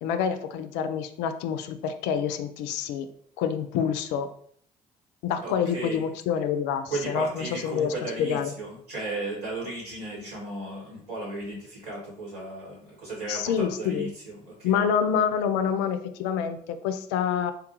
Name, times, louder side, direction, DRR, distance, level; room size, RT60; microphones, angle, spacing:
voice 1, 0.0-3.1 3.4-4.3 5.2-8.5 13.3-14.1 14.6-17.5, left 7 dB, 60° left, 9 dB, 0.4 m, -27 dB
voice 2, 5.4-6.0 6.9-14.7, right 2 dB, 80° right, -4 dB, 1.4 m, -35 dB
3.6 x 2.3 x 2.9 m, 0.62 s
figure-of-eight pair, 50°, 20 cm